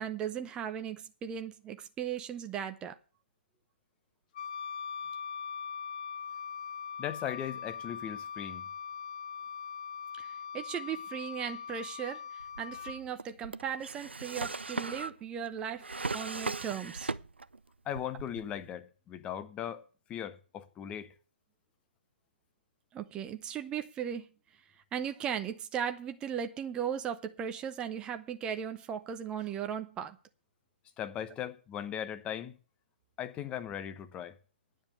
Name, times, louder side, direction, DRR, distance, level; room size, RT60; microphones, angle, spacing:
voice 1, 0.0-3.0 10.2-15.9 16.1-17.1 22.9-24.3 24.9-30.2, right 8 dB, 15° right, 0.6 m, -37 dB
Wind instrument woodwind instrument, 4.3-13.0, left 7 dB, 45° left, 1.0 m, -41 dB
voice 2, 7.0-8.6 17.8-19.8 20.1-21.1 31.0-32.6 33.2-34.3, left 10 dB, 20° left, 0.9 m, -38 dB
Drawer open or close, 12.4-17.6 17.9-18.7, right 3 dB, 85° right, 0.5 m, -38 dB
10.5 x 7.2 x 8.1 m
figure-of-eight pair, 130°, 6 cm